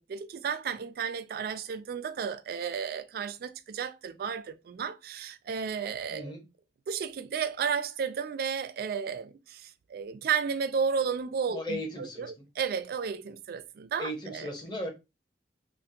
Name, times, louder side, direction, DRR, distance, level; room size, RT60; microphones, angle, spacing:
voice 1, 0.1-6.3 6.9-14.5, right 6 dB, 55° right, 0.3 m, -33 dB
voice 2, 6.1-6.4 11.5-12.5 14.0-14.9, equal, 25° left, 0.8 m, -37 dB
3.4 x 2.1 x 2.7 m
head